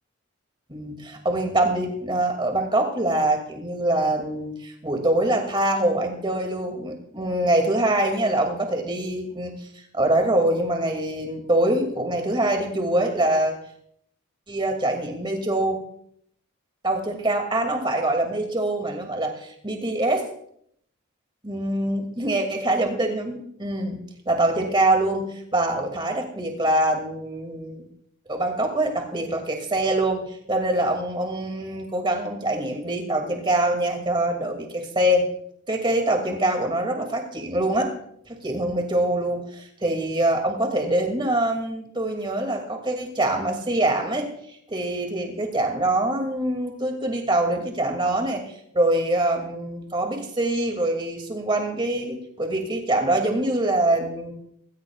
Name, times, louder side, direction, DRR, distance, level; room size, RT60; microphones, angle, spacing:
voice 1, 0.7-9.7 9.9-13.6 14.5-15.8 16.8-20.2 21.4-24.0 24.3-27.8 28.3-35.3 35.7-37.9 38.3-44.3 44.7-54.3, right 1 dB, 20° right, 3 dB, 2.4 m, -24 dB
19.0 x 16.5 x 2.4 m, 0.68 s
head